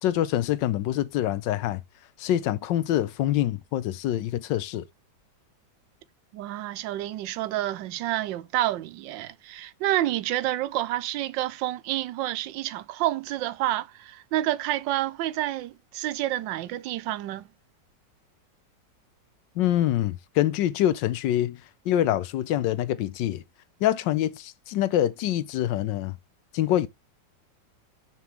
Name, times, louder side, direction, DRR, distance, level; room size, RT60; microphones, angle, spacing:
voice 1, 0.0-1.8 2.2-4.8 19.6-21.6 21.8-23.4 23.8-26.2 26.5-26.9, left 12 dB, 85° left, 1.3 m, -25 dB
voice 2, 6.3-17.5, right 14 dB, 85° right, 1.3 m, -29 dB
6.1 x 5.4 x 3.1 m
omnidirectional pair, 2.0 m